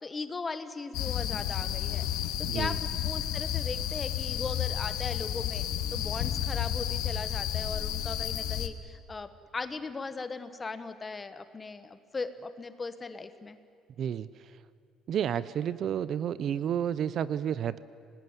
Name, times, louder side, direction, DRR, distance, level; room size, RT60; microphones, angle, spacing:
voice 1, 0.0-2.0 2.5-5.6 5.9-13.6, left 4 dB, 20° left, 11 dB, 1.2 m, -38 dB
sound 1, 0.9-8.7, left 11 dB, 75° left, 1.3 m, -31 dB
voice 2, 2.5-2.8 14.0-14.5 15.1-17.8, right 9 dB, 45° right, 17 dB, 0.6 m, -31 dB
26.0 x 19.5 x 9.7 m, 2.5 s
cardioid pair, 160°, 0 cm